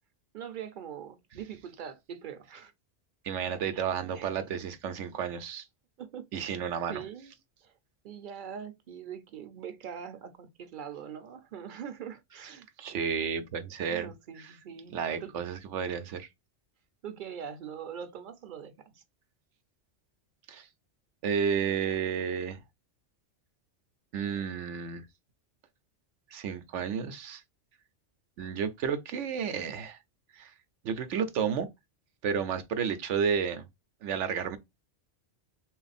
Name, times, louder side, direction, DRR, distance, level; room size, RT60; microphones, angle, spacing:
voice 1, 0.3-2.7 4.1-4.3 6.0-6.6 6.9-7.3 7.6-7.7 8.0-12.7 13.9-15.3 17.0-19.0, right 8 dB, 55° right, 0.7 m, -42 dB
voice 2, 3.2-5.6 6.3-7.0 12.8-14.1 14.9-16.3 20.5-20.7 21.2-22.6 24.1-25.0 26.3-27.4 28.4-30.0 30.4-30.5 30.8-31.7 32.2-33.7 34.0-34.6, right 7 dB, 85° right, 1.0 m, -31 dB
3.4 x 2.5 x 4.0 m
omnidirectional pair, 1.2 m